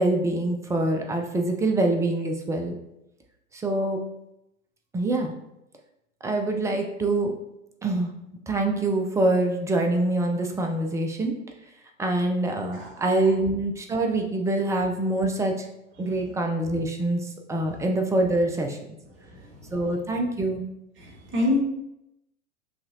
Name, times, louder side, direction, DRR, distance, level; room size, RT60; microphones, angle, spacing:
voice 1, 0.0-2.8 3.5-4.0 4.9-5.3 6.2-7.3 7.8-8.1 8.5-11.3 12.0-15.7 16.0-18.8 19.7-20.6, right 2 dB, 10° right, 3 dB, 0.4 m, -25 dB
voice 2, 19.2-19.5 21.0-21.6, left 2 dB, 35° right, -1 dB, 1.5 m, -27 dB
5.4 x 3.2 x 2.6 m, 0.84 s
figure-of-eight pair, 95°, 36 cm